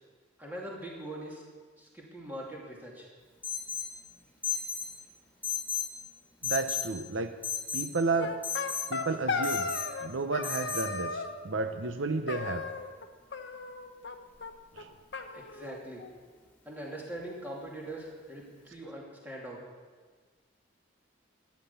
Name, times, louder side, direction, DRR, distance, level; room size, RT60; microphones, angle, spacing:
voice 1, 0.4-1.4 1.8-3.1 15.3-16.0 16.6-19.7, right 1 dB, 10° right, -3 dB, 2.6 m, -42 dB
Alarm, 3.4-3.9 4.4-4.9 5.4-5.9 6.4-6.9 7.4-7.9 8.4-8.9 9.4-9.9 10.4-10.9, left 7 dB, 10° left, 2.8 m, -33 dB
voice 2, 6.4-7.3 7.7-8.4 8.9-9.7 10.0-12.6 14.8-14.9, right 3 dB, 75° right, 8 dB, 0.8 m, -32 dB
sound 1, 8.2-10.1 10.3-11.4 12.3-13.1 13.3-14.2 14.4-14.5 14.8-14.9 15.1-16.2, left 4 dB, 60° left, 1.0 m, -35 dB
13.5 x 10.5 x 7.0 m, 1.5 s
head